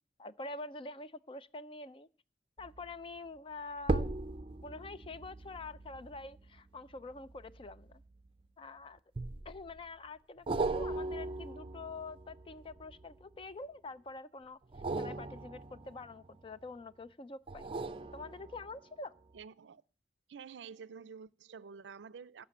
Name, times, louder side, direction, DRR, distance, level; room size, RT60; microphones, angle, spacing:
voice 1, 0.2-2.1 2.6-4.1 4.6-8.0 8.6-9.0 9.5-10.5 10.7-14.6 15.0-17.7 18.1-19.1, left 3 dB, 30° left, 0.5 m, -46 dB
sound 1, 2.6-2.9 3.8-8.5 9.2-9.8 10.5-13.4 14.6-16.7 17.5-18.9 19.4-19.5, right 2 dB, 30° right, 0.5 m, -39 dB
voice 2, 19.3-19.8 20.3-22.5, right 6 dB, 85° right, 0.5 m, -49 dB
11.0 x 6.1 x 8.6 m
head